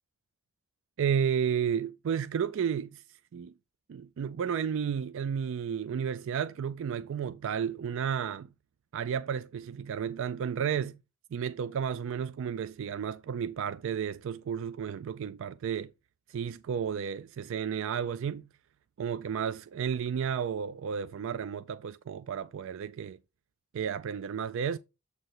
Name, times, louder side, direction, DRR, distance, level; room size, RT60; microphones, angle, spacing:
voice 1, 1.0-3.0 3.3-3.5 3.9-8.5 8.9-11.0 11.3-15.9 16.3-18.5 19.0-23.2 23.7-24.8, right 7 dB, 60° right, 0.3 m, -32 dB
7.7 x 2.8 x 5.8 m
head